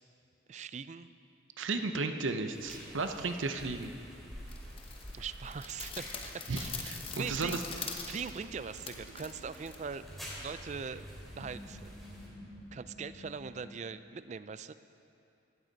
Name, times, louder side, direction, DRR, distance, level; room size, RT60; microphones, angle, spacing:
voice 1, 0.5-1.1 5.1-11.1 11.4-12.0 12.7-14.7, right 6 dB, 35° right, 13 dB, 0.3 m, -42 dB
voice 2, 1.6-3.9 6.5-7.6, right 3 dB, 90° right, 7 dB, 0.8 m, -34 dB
sound 1, 2.5-12.3, equal, ahead, 3.1 m, -49 dB
sound 2, 4.5-10.5, left 5 dB, 30° left, 0.9 m, -44 dB
sound 3, 7.2-13.6, equal, 70° left, 2.0 m, -52 dB
16.5 x 13.0 x 4.1 m, 2.7 s
head